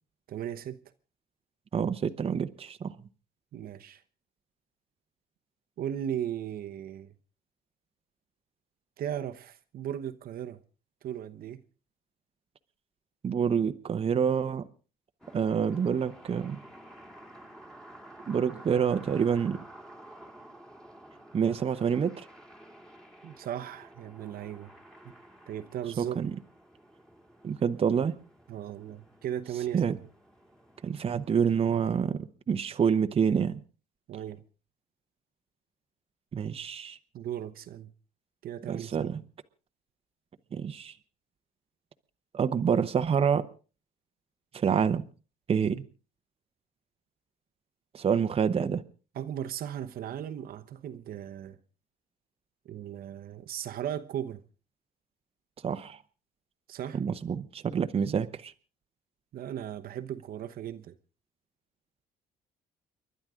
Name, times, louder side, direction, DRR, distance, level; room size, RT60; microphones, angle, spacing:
voice 1, 0.3-0.8 3.5-4.0 5.8-7.1 9.0-10.6 11.0-11.6 23.2-24.7 25.0-25.2 25.5-26.2 28.5-30.0 34.1-34.4 37.1-37.9 38.4-39.2 49.1-51.6 52.6-54.4 56.7-57.0 59.3-61.0, right 10 dB, 60° right, 1.0 m, -37 dB
voice 2, 1.7-2.9 13.2-14.6 15.3-16.6 18.3-19.6 21.3-22.3 26.0-26.3 27.4-28.2 29.7-29.9 30.8-33.6 36.3-37.0 38.7-39.2 40.5-40.9 42.3-43.4 44.5-45.0 45.5-45.8 47.9-48.8 55.6-56.0 56.9-58.5, right 7 dB, 35° right, 0.9 m, -27 dB
sound 1, 15.2-31.9, right 1 dB, 5° left, 2.1 m, -52 dB
30.0 x 11.5 x 3.7 m
cardioid pair, 110°, 17 cm